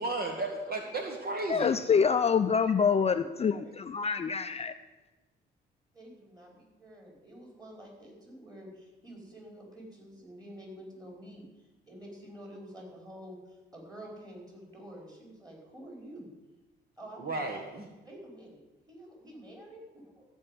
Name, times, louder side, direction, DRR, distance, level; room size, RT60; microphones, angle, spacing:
voice 1, 0.0-1.8 17.2-17.9, right 2 dB, 50° right, 3 dB, 1.6 m, -34 dB
voice 2, 1.5-4.7, left 6 dB, 30° left, 9 dB, 0.5 m, -26 dB
voice 3, 2.2-2.7 3.2-3.7 5.9-16.3 17.0-17.4 18.0-20.2, equal, 20° right, -1 dB, 5.2 m, -49 dB
14.0 x 5.4 x 9.3 m, 1.1 s
cardioid pair, 90°, 20 cm